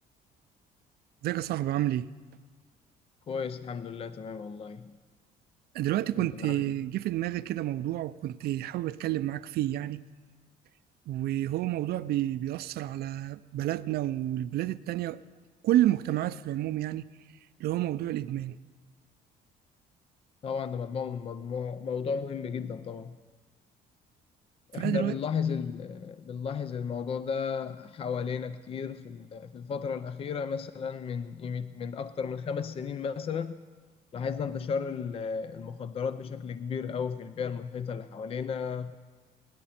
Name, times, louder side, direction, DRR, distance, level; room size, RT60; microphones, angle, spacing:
voice 1, 1.2-2.1 5.7-10.0 11.1-15.2 15.6-17.1 17.6-18.6 24.7-25.2, right 13 dB, 70° right, 0.5 m, -29 dB
voice 2, 3.3-4.9 6.2-6.7 20.4-23.2 24.7-33.6 34.1-39.0, left 6 dB, 35° left, 0.5 m, -34 dB
29.0 x 11.0 x 4.3 m
cardioid pair, 110°, 17 cm